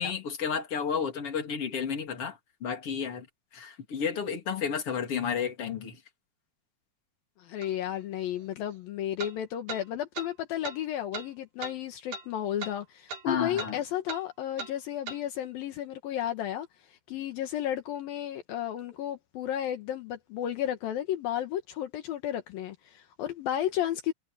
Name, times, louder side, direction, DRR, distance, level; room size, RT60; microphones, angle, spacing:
voice 1, 0.0-3.3 3.5-6.0 13.3-13.8, left 7 dB, 40° left, 3.8 m, -32 dB
voice 2, 7.4-24.1, left 11 dB, 75° left, 3.1 m, -33 dB
sound 1, 7.6-7.7 9.2-9.3 9.7-9.8 10.2-10.3 10.6-10.8 11.1-11.3 11.6-11.8 12.1-12.3 12.6-12.8 13.1-13.2 13.6-13.7 14.1-14.2 14.6-14.7 15.1-15.2, right 4 dB, 70° right, 4.8 m, -38 dB
omnidirectional pair, 4.3 m